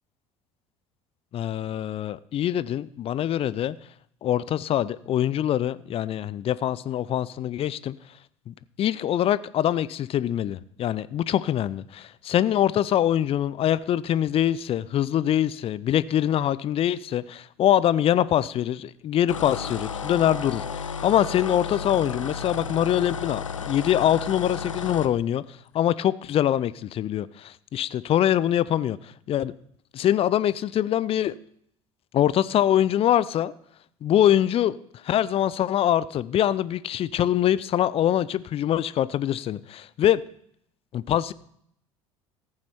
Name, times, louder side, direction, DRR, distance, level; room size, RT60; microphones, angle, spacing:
voice 1, 1.3-3.8 4.2-7.9 8.5-25.4 25.7-29.0 29.3-29.5 29.9-31.3 32.1-33.5 34.0-34.8 35.0-40.2 40.9-41.3, left 11 dB, 35° left, 18 dB, 0.5 m, -24 dB
sound 1, 19.3-25.1, left 6 dB, 85° left, 0.5 m, -33 dB
14.5 x 8.7 x 4.4 m, 0.69 s
figure-of-eight pair, 60°, 16 cm